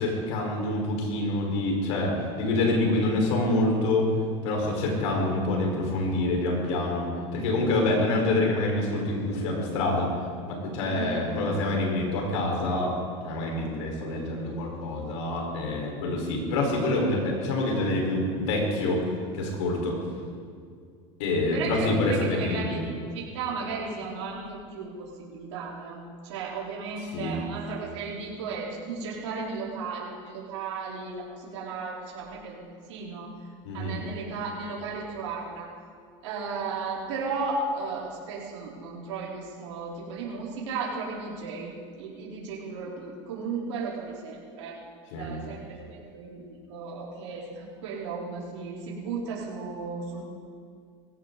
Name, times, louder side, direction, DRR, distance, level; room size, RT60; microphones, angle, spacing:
voice 1, 0.0-4.1 4.4-10.1 10.5-13.0 13.2-19.0 19.3-20.0 21.2-22.9 27.1-27.4 33.6-34.0 45.1-45.3, left 2 dB, 80° left, 0 dB, 4.9 m, -26 dB
voice 2, 21.5-22.8 23.1-32.6 32.9-33.3 33.7-35.7 36.2-44.8 45.2-50.2, right 4 dB, 80° right, -5 dB, 4.1 m, -35 dB
20.5 x 16.5 x 4.1 m, 2.2 s
supercardioid pair, 105°, 15 cm